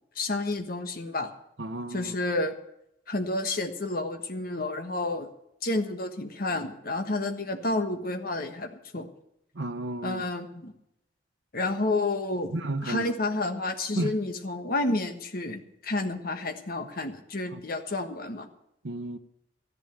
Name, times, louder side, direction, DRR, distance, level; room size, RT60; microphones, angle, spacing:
voice 1, 0.1-1.3 1.9-2.5 3.1-5.3 5.6-9.1 10.0-10.7 11.5-18.5, left 2 dB, 50° left, 1.4 m, -30 dB
voice 2, 1.6-2.1 9.5-10.2 12.5-13.1 14.0-14.1 17.5-17.6 18.8-19.2, right 2 dB, 80° right, 1.0 m, -32 dB
13.5 x 11.0 x 6.9 m
head